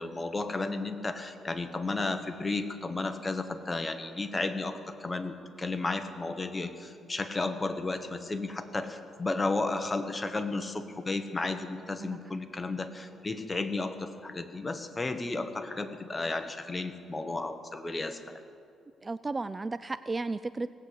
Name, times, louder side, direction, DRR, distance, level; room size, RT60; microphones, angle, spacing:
voice 1, 0.0-18.2, left 3 dB, 20° left, 8 dB, 1.2 m, -33 dB
voice 2, 19.0-20.7, right 3 dB, 25° right, 15 dB, 0.3 m, -34 dB
18.0 x 8.3 x 8.0 m, 2.4 s
cardioid pair, 90°, 0 cm